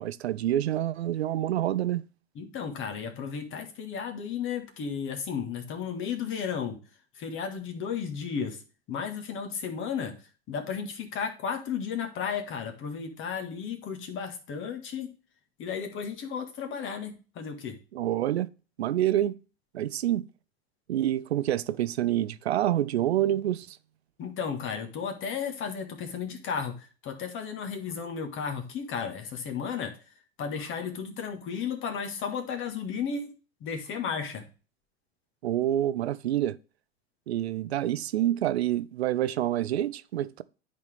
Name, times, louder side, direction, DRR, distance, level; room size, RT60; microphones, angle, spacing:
voice 1, 0.0-2.0 17.9-18.5 18.8-19.3 19.7-20.3 20.9-23.8 35.4-36.6 37.3-40.4, right 12 dB, 80° right, 0.5 m, -27 dB
voice 2, 2.4-6.8 7.2-8.6 8.9-10.2 10.5-15.1 15.6-17.8 24.2-30.0 30.4-33.3 33.6-34.5, left 6 dB, 40° left, 1.7 m, -34 dB
10.5 x 4.2 x 3.4 m
hypercardioid pair, 90°, 32 cm